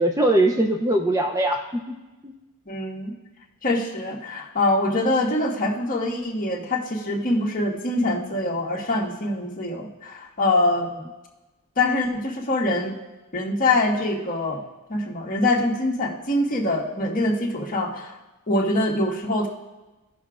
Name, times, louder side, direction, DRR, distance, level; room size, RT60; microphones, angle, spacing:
voice 1, 0.0-2.0 2.2-2.3, right 1 dB, 15° right, 2 dB, 0.5 m, -21 dB
voice 2, 2.7-3.1 3.6-10.9 11.8-12.9 13.3-14.6 14.9-18.1 18.5-19.5, left 2 dB, 40° left, -2 dB, 1.4 m, -24 dB
17.0 x 6.0 x 2.4 m, 1.1 s
head